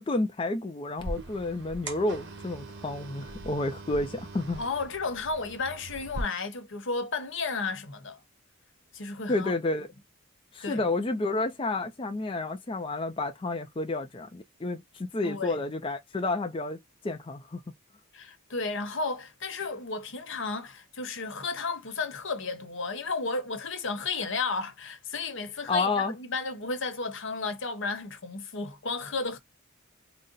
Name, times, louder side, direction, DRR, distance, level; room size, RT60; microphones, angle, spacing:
voice 1, 0.0-4.6 9.3-9.9 10.5-16.8 17.0-17.6 25.7-26.2, left 2 dB, 25° left, 0.5 m, -30 dB
sound 1, 1.0-6.2, right 2 dB, 60° right, 1.1 m, -41 dB
voice 2, 4.6-8.2 8.9-9.5 10.6-10.8 15.2-15.6 18.1-29.4, left 4 dB, 60° left, 1.0 m, -33 dB
4.0 x 2.1 x 3.8 m
head